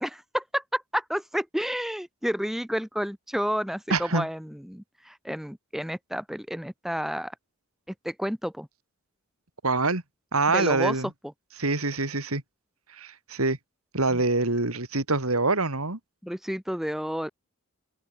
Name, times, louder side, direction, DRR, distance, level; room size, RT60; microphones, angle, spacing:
voice 1, 0.0-7.3 8.0-8.7 10.5-11.0 16.2-17.3, equal, ahead, 0.7 m, -30 dB
voice 2, 3.9-4.3 9.6-10.0 10.3-11.1 11.6-12.4 13.0-13.6 13.9-16.0, right 3 dB, 85° right, 3.6 m, -25 dB
open air
head